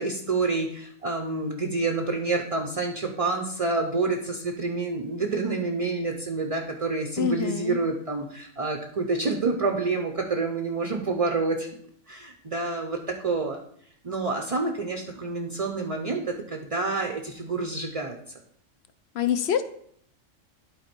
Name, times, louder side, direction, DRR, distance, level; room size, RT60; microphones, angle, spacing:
voice 1, 0.0-11.7 12.1-13.6 14.0-18.2, right 3 dB, 35° right, 3 dB, 0.6 m, -28 dB
voice 2, 7.2-7.8 19.1-19.6, left 9 dB, 65° left, 11 dB, 0.7 m, -25 dB
11.0 x 4.3 x 4.4 m, 0.65 s
omnidirectional pair, 1.3 m